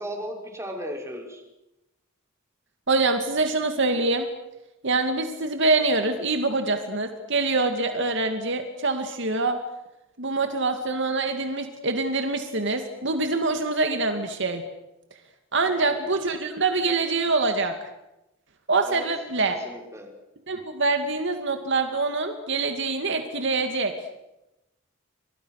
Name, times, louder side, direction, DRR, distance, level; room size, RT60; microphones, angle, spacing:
voice 1, 0.0-1.4 15.6-16.0 18.8-19.1 19.5-20.1, equal, 15° right, 2 dB, 5.9 m, -36 dB
voice 2, 2.9-4.3 4.8-9.6 10.2-14.6 15.5-17.7 18.7-19.5 20.5-23.9, right 3 dB, 60° right, 6 dB, 2.3 m, -25 dB
29.5 x 26.5 x 6.6 m, 0.92 s
head